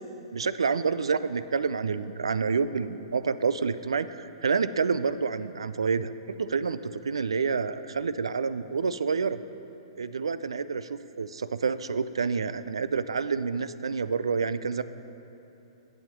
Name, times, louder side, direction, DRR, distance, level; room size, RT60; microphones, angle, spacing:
voice 1, 0.3-6.1 6.4-9.4 10.0-14.8, right 5 dB, 75° right, 14 dB, 0.4 m, -28 dB
9.4 x 7.2 x 7.2 m, 3.0 s
figure-of-eight pair, 115°, 3 cm